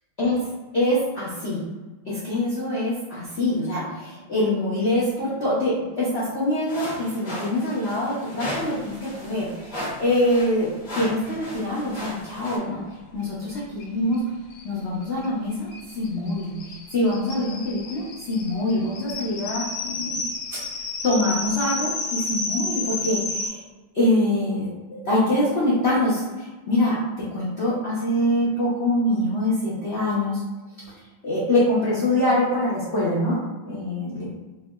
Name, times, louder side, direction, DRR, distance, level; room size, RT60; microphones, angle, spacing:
voice 1, 0.7-1.6 2.0-12.8 13.1-14.2 14.6-20.6 21.0-23.7 23.9-30.4 30.9-34.3, left 1 dB, 70° left, -9 dB, 0.6 m, -24 dB
sound 1, 6.7-12.6, equal, 25° left, 0.9 m, -36 dB
sound 2, 13.8-13.9 14.1-14.2 14.5-23.5, left 2 dB, 85° left, 1.6 m, -31 dB
3.5 x 3.2 x 2.2 m, 1.2 s
omnidirectional pair, 2.4 m